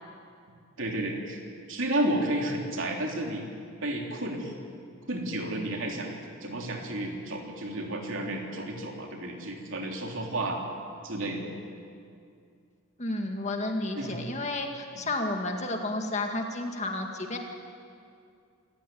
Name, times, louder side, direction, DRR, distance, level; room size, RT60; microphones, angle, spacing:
voice 1, 0.8-1.4 1.7-3.4 3.8-4.5 5.1-10.6 11.0-11.5 13.9-14.2, right 1 dB, 65° right, 1 dB, 3.3 m, -32 dB
voice 2, 13.0-17.4, left 2 dB, 30° left, 3 dB, 2.0 m, -31 dB
26.5 x 14.5 x 9.4 m, 2.4 s
head